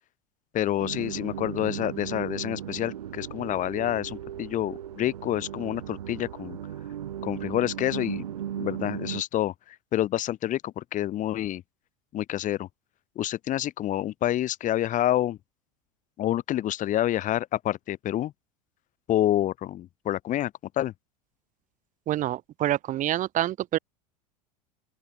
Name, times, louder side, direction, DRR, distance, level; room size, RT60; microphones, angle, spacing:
voice 1, 0.5-6.6 7.2-8.2 8.6-11.6 12.1-12.7 13.2-15.4 16.2-18.3 19.1-20.5 20.8-20.9, left 13 dB, 40° left, 1.8 m, -28 dB
sound 1, 0.8-9.2, right 10 dB, 80° right, 2.5 m, -36 dB
voice 2, 22.1-23.8, right 13 dB, 40° right, 1.6 m, -27 dB
open air
hypercardioid pair, 85°, 20 cm